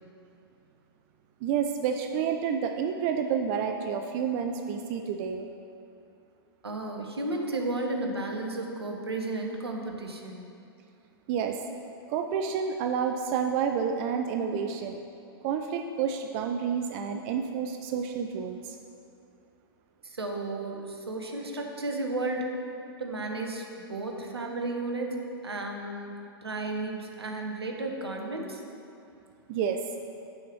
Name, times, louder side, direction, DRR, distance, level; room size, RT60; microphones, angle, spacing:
voice 1, 1.4-5.5 11.3-11.6 12.1-15.0 15.4-18.8 29.5-29.8, right 7 dB, 35° right, 5 dB, 0.4 m, -29 dB
voice 2, 6.6-10.5 20.0-22.5 23.0-26.1 26.4-28.6, right 2 dB, 80° right, 2 dB, 0.9 m, -33 dB
6.2 x 4.7 x 6.2 m, 2.6 s
figure-of-eight pair, 100°, 13 cm